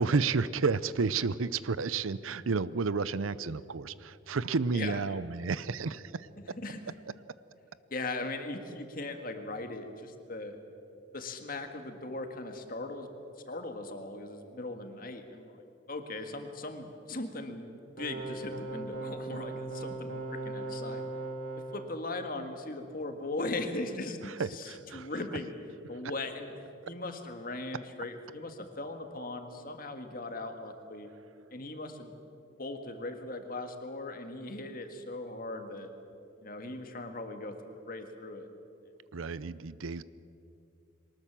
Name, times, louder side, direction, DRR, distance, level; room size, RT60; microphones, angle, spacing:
voice 1, 0.0-6.3 24.4-25.1 39.1-40.0, right 4 dB, 85° right, 17 dB, 0.6 m, -31 dB
voice 2, 6.4-7.0 7.9-10.6 11.1-13.1 13.5-15.6 15.9-17.7 18.0-21.1 21.5-25.5 25.9-26.5 26.9-31.1 31.5-32.1 32.6-35.9 36.4-38.5, left 2 dB, 45° left, 6 dB, 1.8 m, -39 dB
sound 1, 18.0-21.9, right 2 dB, 65° right, 2.8 m, -38 dB
23.0 x 19.5 x 7.4 m, 2.8 s
head